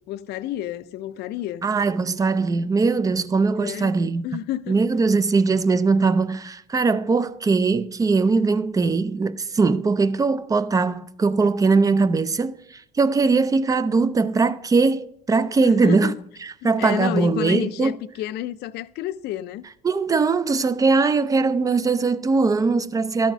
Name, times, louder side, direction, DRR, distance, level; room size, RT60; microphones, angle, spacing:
voice 1, 0.1-1.7 3.6-4.0 4.2-4.8 15.6-16.2 16.6-19.7, left 13 dB, 75° left, 0.4 m, -30 dB
voice 2, 1.6-4.2 4.7-16.1 16.4-17.9 19.8-23.3, right 4 dB, 20° right, 0.4 m, -21 dB
12.0 x 4.2 x 5.9 m
cardioid pair, 110°, 17 cm